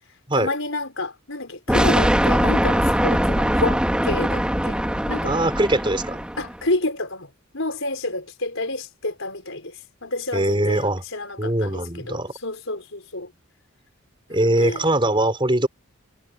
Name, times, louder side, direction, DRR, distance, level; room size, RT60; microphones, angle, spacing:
voice 1, 0.3-4.8 5.1-5.4 6.4-9.8 10.0-13.3 14.3-14.9, left 2 dB, 65° left, 6.0 m, -29 dB
sound 1, 1.7-6.6, equal, 5° right, 2.0 m, -21 dB
voice 2, 5.3-6.2 10.3-11.0 11.4-12.3 14.3-15.7, right 1 dB, 25° right, 5.3 m, -21 dB
head